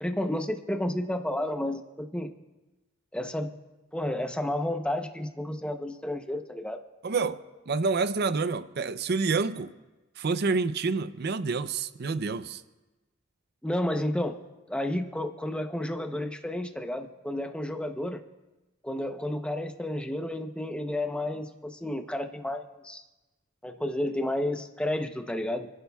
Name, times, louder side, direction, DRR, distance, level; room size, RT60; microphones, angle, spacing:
voice 1, 0.0-2.3 3.1-3.5 3.9-6.8 13.6-14.4 14.7-18.2 18.8-23.0 23.6-25.7, left 1 dB, 5° left, 5 dB, 0.8 m, -31 dB
voice 2, 7.0-7.4 7.7-9.7 10.2-12.6, right 4 dB, 50° right, 12 dB, 0.6 m, -28 dB
29.5 x 11.0 x 2.3 m, 1.1 s
head